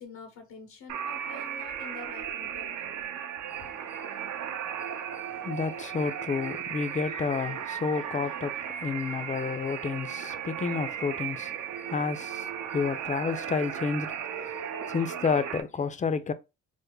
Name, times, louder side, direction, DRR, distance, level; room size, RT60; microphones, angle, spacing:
voice 1, 0.0-3.1, left 4 dB, 90° left, 0.8 m, -47 dB
sound 1, 0.9-15.6, right 9 dB, 75° right, 0.6 m, -36 dB
voice 2, 3.6-16.3, left 5 dB, 25° left, 0.4 m, -31 dB
3.4 x 2.1 x 3.2 m
cardioid pair, 90°, 30 cm